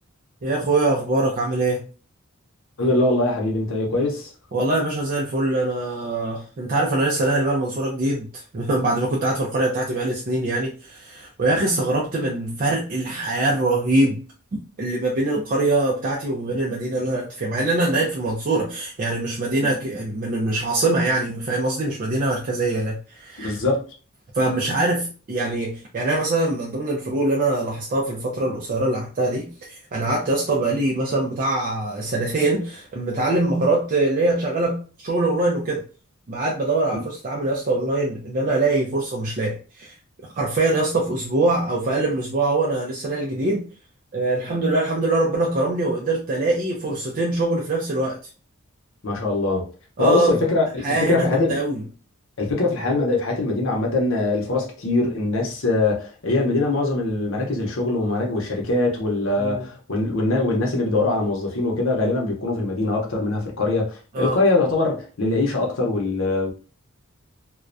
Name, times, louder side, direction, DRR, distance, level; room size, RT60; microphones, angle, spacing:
voice 1, 0.4-1.8 4.5-14.2 14.5-23.6 24.3-35.8 36.3-39.9 40.3-43.7 44.1-48.2 50.0-50.4 50.8-51.8 59.4-59.6 64.1-64.4, right 2 dB, 40° right, 0.4 m, -23 dB
voice 2, 2.8-4.3 23.4-23.8 36.9-37.0 49.0-49.7 50.0-51.6 52.4-66.5, left 2 dB, 65° left, 0.7 m, -22 dB
2.3 x 2.1 x 2.5 m
head